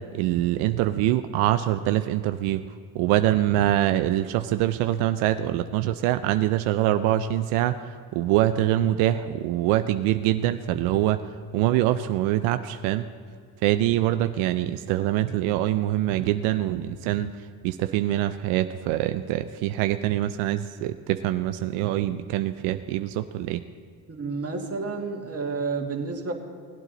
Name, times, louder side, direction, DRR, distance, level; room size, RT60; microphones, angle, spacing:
voice 1, 0.1-2.6 2.9-13.1 13.6-23.6, right 13 dB, 85° right, 9 dB, 0.6 m, -24 dB
voice 2, 24.1-26.3, right 4 dB, 30° right, 1 dB, 1.9 m, -30 dB
17.5 x 8.9 x 4.0 m, 2.2 s
supercardioid pair, 80°, 49 cm